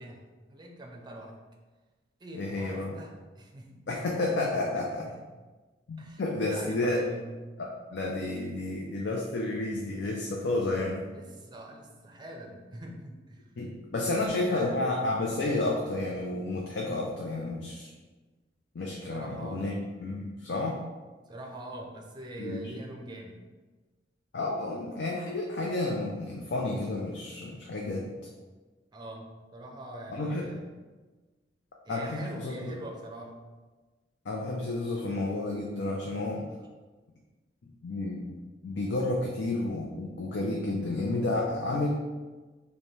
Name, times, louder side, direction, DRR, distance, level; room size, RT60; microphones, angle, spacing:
voice 1, 0.0-1.4 2.2-3.8 5.0-5.2 6.0-7.4 11.1-13.5 14.0-14.8 19.1-19.7 21.3-23.4 28.9-30.7 31.8-33.4, right 1 dB, 25° right, 1 dB, 0.5 m, -43 dB
voice 2, 2.3-2.9 3.9-5.0 5.9-7.0 7.6-11.0 13.6-17.9 18.7-19.7 20.0-20.8 22.4-22.6 24.3-28.1 30.1-30.5 31.9-32.8 34.3-36.5 37.8-41.9, left 2 dB, 70° left, -2 dB, 0.5 m, -31 dB
5.3 x 2.2 x 3.2 m, 1.3 s
head